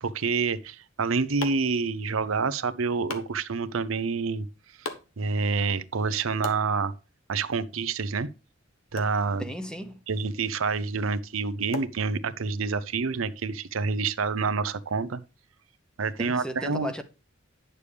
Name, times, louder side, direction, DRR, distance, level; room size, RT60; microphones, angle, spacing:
voice 1, 0.0-4.5 5.2-6.9 7.3-8.3 8.9-9.5 10.1-15.2 16.0-16.9, right 4 dB, 85° right, 0.7 m, -27 dB
sound 1, 0.7-12.7, left 3 dB, 80° left, 1.3 m, -45 dB
voice 2, 9.4-10.0 16.2-17.0, equal, 5° left, 0.8 m, -35 dB
9.8 x 6.8 x 3.3 m
head